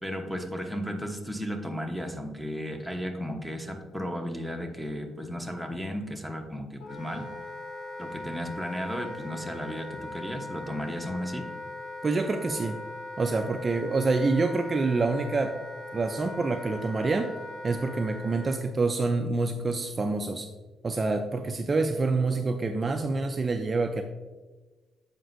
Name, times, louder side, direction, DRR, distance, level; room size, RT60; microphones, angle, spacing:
voice 1, 0.0-7.3 8.0-11.5, equal, ahead, 2 dB, 0.9 m, -34 dB
Wind instrument woodwind instrument, 6.8-18.6, left 2 dB, 75° left, 1.3 m, -40 dB
voice 2, 12.0-12.8 13.2-15.6 15.9-17.3 17.6-20.5 20.8-24.0, right 3 dB, 35° right, 5 dB, 0.4 m, -27 dB
7.6 x 5.1 x 2.6 m, 1.2 s
cardioid pair, 90°, 0 cm